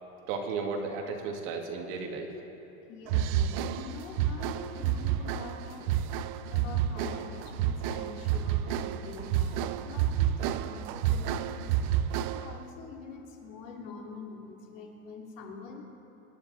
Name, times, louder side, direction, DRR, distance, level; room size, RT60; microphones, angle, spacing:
voice 1, 0.3-2.4, right 4 dB, 55° right, 2 dB, 2.1 m, -34 dB
voice 2, 2.9-5.9 6.5-11.7 12.2-15.8, left 4 dB, 70° left, -1 dB, 3.0 m, -45 dB
sound 1, 3.1-12.6, right 10 dB, 40° right, 0.4 m, -30 dB
25.0 x 10.5 x 4.1 m, 3.0 s
supercardioid pair, 150°, 41 cm